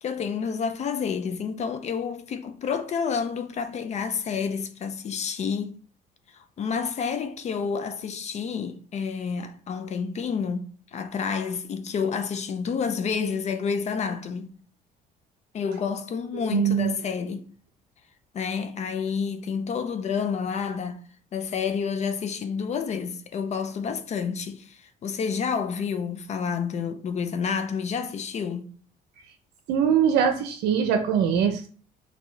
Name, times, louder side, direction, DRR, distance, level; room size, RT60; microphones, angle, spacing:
voice 1, 0.0-5.8 6.3-14.5 15.5-17.5 18.3-21.0 21.3-28.7, left 6 dB, 40° left, 0.5 m, -29 dB
voice 2, 16.3-16.9 29.7-31.7, right 8 dB, 85° right, 0.6 m, -22 dB
4.4 x 2.7 x 3.3 m
cardioid pair, 110°, 17 cm